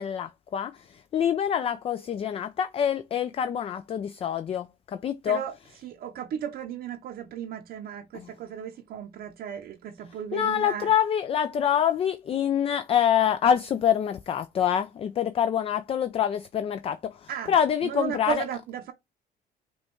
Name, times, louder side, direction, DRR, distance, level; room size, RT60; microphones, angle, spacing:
voice 1, 0.0-5.4 8.1-8.3 10.3-18.4, left 9 dB, 35° left, 0.4 m, -26 dB
voice 2, 5.8-10.9 17.3-17.5 17.8-18.9, right 8 dB, 65° right, 0.6 m, -35 dB
5.2 x 2.3 x 2.9 m
cardioid pair, 110°, 17 cm